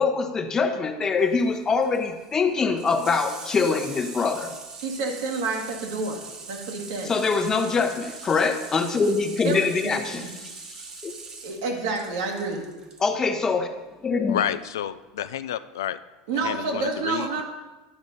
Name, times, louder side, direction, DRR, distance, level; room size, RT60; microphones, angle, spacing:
voice 1, 0.0-4.5 7.1-11.1 13.0-13.7 14.0-14.4, left 4 dB, 30° left, 7 dB, 0.9 m, -24 dB
Water tap faucet / Sink (filling or washing), 1.2-13.1 14.4-14.5, right 4 dB, 35° right, 1.1 m, -42 dB
voice 2, 4.8-7.1 9.4-10.3 11.4-12.7 16.3-17.4, right 3 dB, 75° right, 1 dB, 1.6 m, -29 dB
voice 3, 14.3-16.0 16.4-17.4, left 10 dB, 85° left, 13 dB, 0.3 m, -30 dB
10.0 x 5.2 x 4.1 m, 1.1 s
hypercardioid pair, 90°, 2 cm